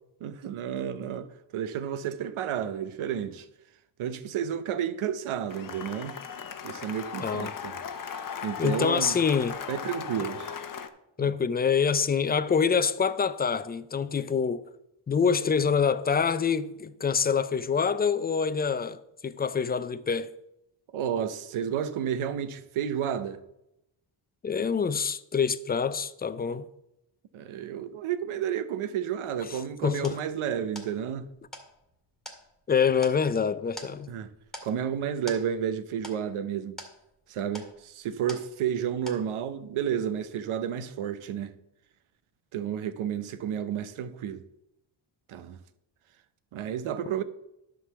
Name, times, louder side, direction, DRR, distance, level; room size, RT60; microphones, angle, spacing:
voice 1, 0.2-1.3 1.5-3.5 4.0-6.2 6.6-7.7 8.4-9.1 9.7-10.5 11.2-11.3 20.9-23.4 27.3-31.3 34.1-34.3 34.6-36.8 37.3-41.5 42.5-44.4 45.3-45.6 46.5-47.2, right 9 dB, 75° right, 0.8 m, -31 dB
Cheering / Applause, 5.5-10.9, left 7 dB, 40° left, 0.8 m, -37 dB
voice 2, 7.2-7.5 8.6-9.6 11.2-14.6 15.1-20.3 24.4-26.7 29.8-30.2 32.7-34.1, left 6 dB, 20° left, 0.4 m, -26 dB
sound 1, 30.0-38.8 39.1-39.6, left 1 dB, ahead, 1.9 m, -47 dB
11.0 x 3.9 x 6.8 m
cardioid pair, 90°, 50 cm